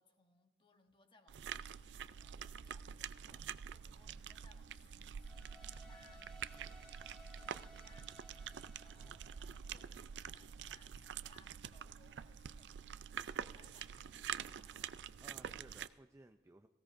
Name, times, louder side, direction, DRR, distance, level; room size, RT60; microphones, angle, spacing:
voice 1, 0.0-14.9, left 2 dB, 30° left, 5 dB, 1.1 m, -69 dB
sound 1, 1.3-15.9, right 8 dB, 80° right, 0.4 m, -47 dB
sound 2, 5.2-10.4, equal, 5° left, 3.1 m, -61 dB
voice 2, 8.9-9.2 15.2-16.7, right 2 dB, 15° right, 6 dB, 0.4 m, -60 dB
18.5 x 16.0 x 2.6 m, 1.2 s
head